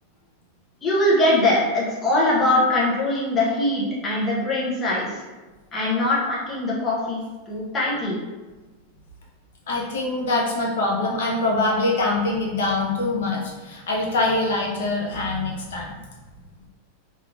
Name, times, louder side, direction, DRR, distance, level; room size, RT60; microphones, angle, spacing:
voice 1, 0.8-5.2 5.7-8.2, left 1 dB, 15° left, -6 dB, 0.5 m, -22 dB
voice 2, 9.7-16.0, left 2 dB, 80° left, -2 dB, 0.7 m, -24 dB
3.1 x 2.3 x 2.4 m, 1.2 s
supercardioid pair, 180°, 0 cm